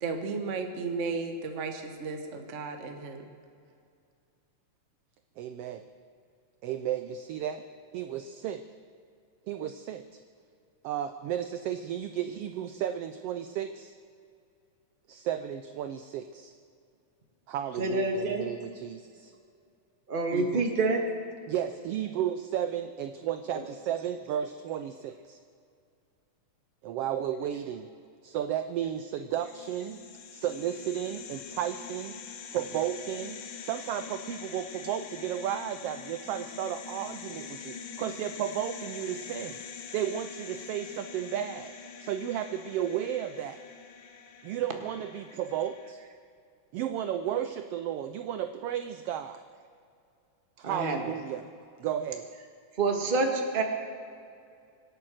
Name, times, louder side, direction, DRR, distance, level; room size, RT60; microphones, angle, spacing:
voice 1, 0.0-3.3, right 4 dB, 45° right, 5 dB, 0.9 m, -34 dB
voice 2, 5.4-5.8 6.6-7.6 7.9-8.6 9.5-10.2 10.8-13.9 15.1-16.5 17.5-19.3 20.3-20.6 21.5-25.4 26.8-27.9 28.2-30.0 30.3-32.2 32.5-39.6 39.9-41.7 42.0-43.6 44.4-46.0 46.7-49.4 50.6-51.4 51.8-52.3, right 10 dB, 80° right, 10 dB, 1.3 m, -33 dB
voice 3, 17.8-18.5 20.1-21.0 23.5-23.6 50.6-51.0 52.8-53.6, right 3 dB, 25° right, 3 dB, 1.2 m, -27 dB
sound 1, 29.3-45.9, left 6 dB, 70° left, 1.0 m, -44 dB
25.0 x 8.8 x 6.4 m, 2.4 s
omnidirectional pair, 3.3 m